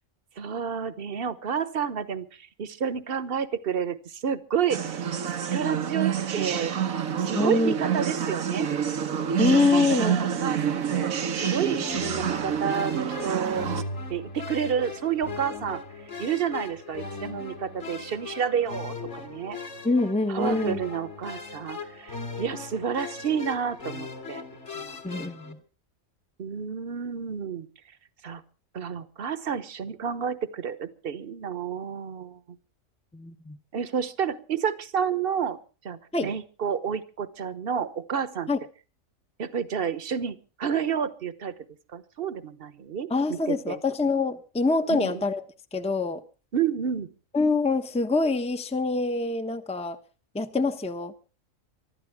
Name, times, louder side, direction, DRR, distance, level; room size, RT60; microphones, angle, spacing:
voice 1, 0.4-5.0 5.5-6.7 7.2-8.7 9.7-11.1 11.4-13.7 14.1-15.8 16.2-19.6 20.3-24.4 24.7-25.0 26.4-27.7 28.2-28.4 28.7-32.6 33.7-38.5 39.4-41.5 41.9-43.8 44.9-45.2 46.5-47.1, right 7 dB, 45° right, 14 dB, 1.2 m, -30 dB
sound 1, 4.7-13.8, right 8 dB, 80° right, 1.6 m, -28 dB
voice 2, 7.3-7.8 9.4-10.2 19.8-20.8 25.0-25.6 33.1-33.6 36.1-36.3 38.5-38.6 43.1-45.4 45.7-46.2 47.3-50.0 50.3-51.1, left 3 dB, 5° left, 9 dB, 0.9 m, -25 dB
sound 2, 11.8-25.5, left 4 dB, 55° left, 2.6 m, -39 dB
24.5 x 12.5 x 3.6 m, 0.35 s
omnidirectional pair, 1.4 m